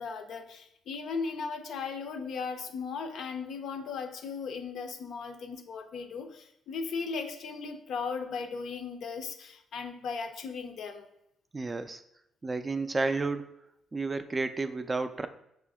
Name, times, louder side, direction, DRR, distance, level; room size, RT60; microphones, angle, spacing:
voice 1, 0.0-11.1, left 5 dB, 70° left, 7 dB, 0.5 m, -37 dB
voice 2, 11.5-12.0 12.4-13.5 13.9-15.3, right 3 dB, 25° right, 9 dB, 0.3 m, -31 dB
5.3 x 2.5 x 3.5 m, 0.78 s
cardioid pair, 90°, 0 cm